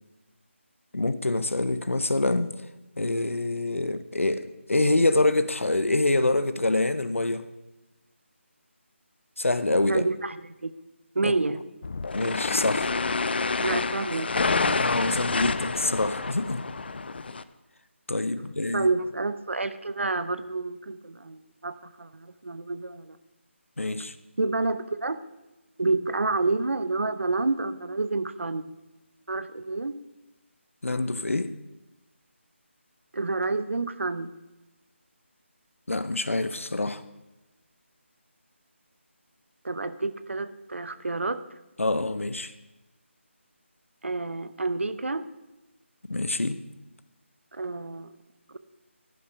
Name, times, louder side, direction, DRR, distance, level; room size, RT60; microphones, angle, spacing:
voice 1, 0.9-2.5 3.0-7.5 9.4-10.0 11.2-11.3 12.1-13.0 14.8-16.6 18.1-18.9 23.8-24.1 30.8-31.6 35.9-37.0 41.8-42.5 46.0-46.6, left 2 dB, 85° left, 0.7 m, -26 dB
voice 2, 9.9-10.7 11.1-11.6 13.6-14.8 18.7-23.2 24.4-25.2 25.8-28.8 29.3-30.0 33.1-34.3 39.6-41.4 44.0-45.2 47.5-48.1 48.5-48.6, right 3 dB, 70° right, 0.7 m, -29 dB
sound 1, 11.8-17.4, left 4 dB, 50° left, 0.5 m, -28 dB
11.0 x 9.5 x 5.7 m
figure-of-eight pair, 160°, 7 cm